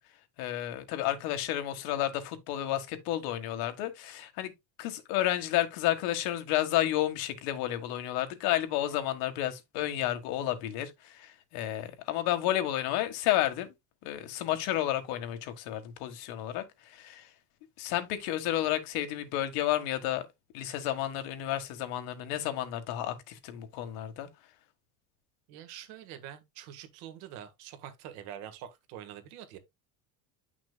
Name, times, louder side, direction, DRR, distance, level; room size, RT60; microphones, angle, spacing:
voice 1, 0.4-4.5 4.8-13.7 14.0-17.3 17.8-20.2 20.5-24.3, left 13 dB, 85° left, 1.7 m, -31 dB
voice 2, 25.5-29.6, right 10 dB, 85° right, 1.7 m, -45 dB
9.7 x 6.0 x 2.3 m
cardioid pair, 175°, 36 cm